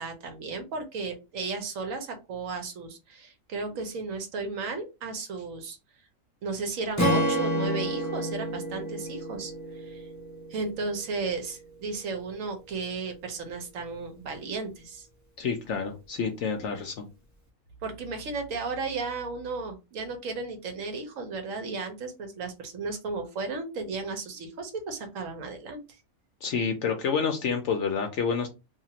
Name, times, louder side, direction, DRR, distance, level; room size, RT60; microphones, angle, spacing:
voice 1, 0.0-5.8 6.4-10.1 10.5-15.1 17.8-25.8, right 4 dB, 70° right, 5 dB, 1.1 m, -34 dB
Strum, 7.0-11.2, equal, 20° left, 0.4 m, -29 dB
voice 2, 15.4-17.1 26.4-28.5, left 6 dB, 65° left, 5 dB, 0.8 m, -28 dB
2.7 x 2.4 x 2.9 m, 0.27 s
omnidirectional pair, 1.5 m